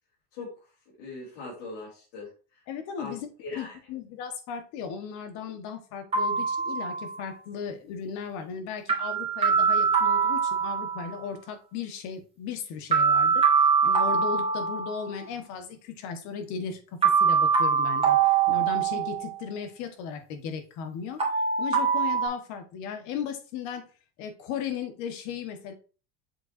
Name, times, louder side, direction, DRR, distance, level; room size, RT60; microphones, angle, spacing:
voice 1, 1.0-2.3 3.0-3.8, left 3 dB, 85° left, 3.6 m, -40 dB
voice 2, 2.7-3.3 3.5-21.2 21.6-23.8 24.2-25.7, left 6 dB, 60° left, 1.5 m, -36 dB
sound 1, 6.1-7.3 8.9-11.2 12.9-15.2 17.0-19.4 21.2-22.3, right 6 dB, 20° right, 1.9 m, -23 dB
7.4 x 4.8 x 2.7 m
supercardioid pair, 125°, 31 cm